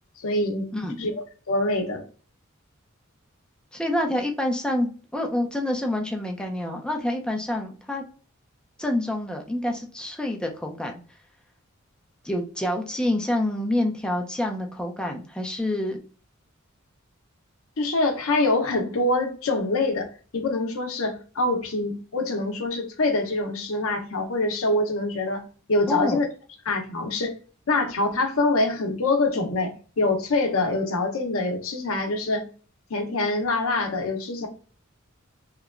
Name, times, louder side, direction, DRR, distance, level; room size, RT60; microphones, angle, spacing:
voice 1, 0.2-0.7 1.0-1.2 1.5-2.0 17.8-25.4 25.7-26.3 26.7-27.3 27.7-32.5 32.9-34.5, left 2 dB, 70° left, 0.6 m, -25 dB
voice 2, 3.7-8.0 8.8-10.9 12.2-16.0 25.9-26.2, left 1 dB, 5° left, 0.5 m, -27 dB
2.9 x 2.2 x 2.3 m
head